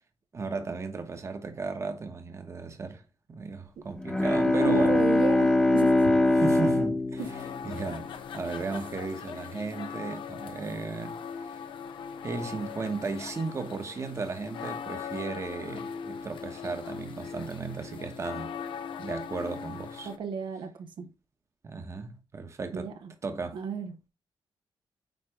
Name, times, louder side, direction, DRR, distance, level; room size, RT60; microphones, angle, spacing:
voice 1, 0.3-3.0 3.3-5.0 6.3-11.6 12.2-18.5 19.0-20.1 21.6-22.9 23.2-23.6, right 4 dB, 35° right, 1.1 m, -35 dB
Bowed string instrument, 4.0-8.5, left 2 dB, 10° left, 1.0 m, -23 dB
voice 2, 4.4-6.1 7.2-7.3 20.0-21.1 22.7-22.9 23.5-24.1, right 6 dB, 70° right, 0.9 m, -33 dB
sound 1, 7.2-20.2, left 7 dB, 80° left, 0.9 m, -40 dB
9.3 x 3.3 x 4.8 m
wide cardioid pair, 130°, 9 cm